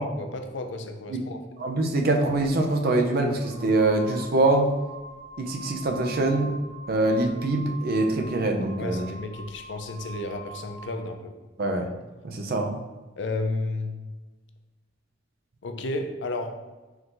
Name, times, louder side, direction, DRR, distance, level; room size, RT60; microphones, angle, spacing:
voice 1, 0.0-1.4 8.8-11.3 13.2-14.0 15.6-16.6, left 2 dB, 70° left, 6 dB, 0.5 m, -32 dB
voice 2, 1.6-4.7 5.4-6.5 6.9-9.1 11.6-11.9 12.2-12.7, right 2 dB, 55° right, 3 dB, 0.5 m, -24 dB
sound 1, 3.3-11.0, right 2 dB, 45° left, 1.3 m, -43 dB
4.7 x 2.6 x 3.8 m, 1.2 s
head